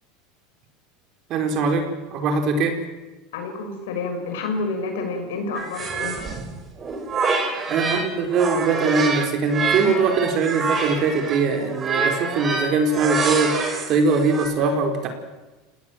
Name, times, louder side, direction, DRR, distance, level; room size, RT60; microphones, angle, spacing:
voice 1, 1.3-2.8 7.7-13.6 13.9-15.1, right 4 dB, 50° right, 5 dB, 4.9 m, -21 dB
voice 2, 3.3-6.2, left 3 dB, 75° left, 5 dB, 6.0 m, -29 dB
sound 1, 5.5-8.1 8.3-14.5, right 4 dB, 30° right, 5.4 m, -26 dB
29.5 x 18.5 x 7.7 m, 1.2 s
hypercardioid pair, 90°, 0 cm